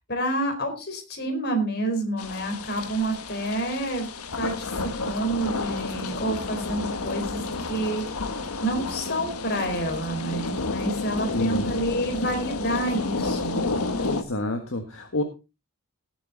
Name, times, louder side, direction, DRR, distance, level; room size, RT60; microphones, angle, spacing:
voice 1, 0.1-4.1 4.4-4.7 5.0-8.0 8.3-13.6, right 1 dB, 45° left, 4 dB, 4.2 m, -28 dB
sound 1, 2.2-14.2, left 3 dB, 85° left, 1.5 m, -31 dB
voice 2, 11.3-11.7 14.0-15.2, left 2 dB, 65° left, 4 dB, 1.7 m, -28 dB
18.0 x 7.7 x 4.0 m, 0.28 s
head